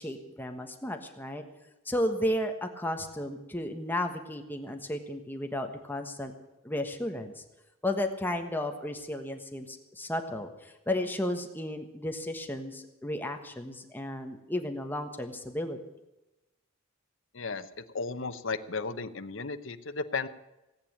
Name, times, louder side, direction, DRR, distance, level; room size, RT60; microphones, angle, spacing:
voice 1, 0.0-1.4 1.8-6.3 6.6-7.4 7.8-15.8, left 1 dB, 10° left, 5 dB, 1.3 m, -33 dB
voice 2, 17.3-17.7 17.9-20.3, left 4 dB, 60° left, 9 dB, 0.9 m, -34 dB
17.5 x 8.8 x 8.7 m, 0.99 s
head